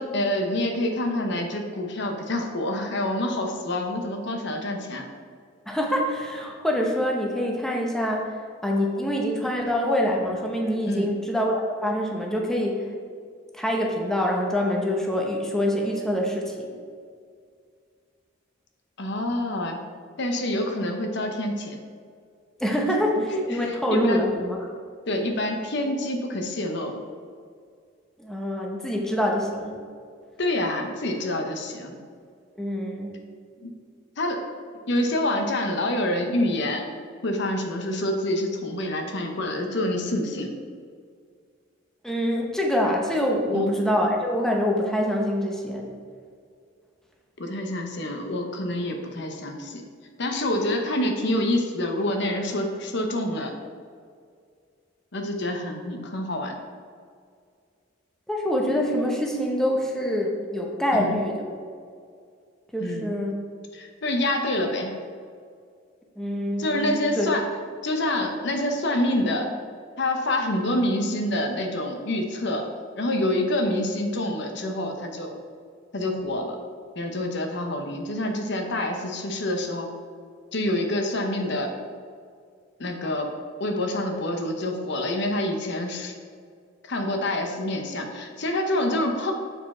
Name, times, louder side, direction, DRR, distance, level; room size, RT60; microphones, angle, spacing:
voice 1, 0.0-5.1 10.8-11.1 19.0-19.8 20.2-21.8 23.3-24.2 25.1-27.0 30.4-32.0 33.6-33.7 34.2-34.4 34.9-36.8 37.2-40.6 43.5-43.7 47.4-49.8 50.2-53.5 55.1-56.5 60.9-61.2 62.8-63.2 63.7-65.0 66.6-67.5 67.8-69.5 70.0-72.6 73.0-75.3 75.9-76.6 77.0-79.9 80.5-81.7 82.8-83.3 83.6-86.1 86.8-89.3, left 1 dB, 65° left, 4 dB, 0.8 m, -27 dB
voice 2, 5.7-12.9 13.5-16.7 22.6-24.7 28.2-29.7 32.6-33.2 42.0-45.9 58.3-61.4 62.7-63.4 66.2-67.3, equal, 5° left, 0 dB, 0.8 m, -25 dB
8.0 x 4.8 x 4.2 m, 2.1 s
head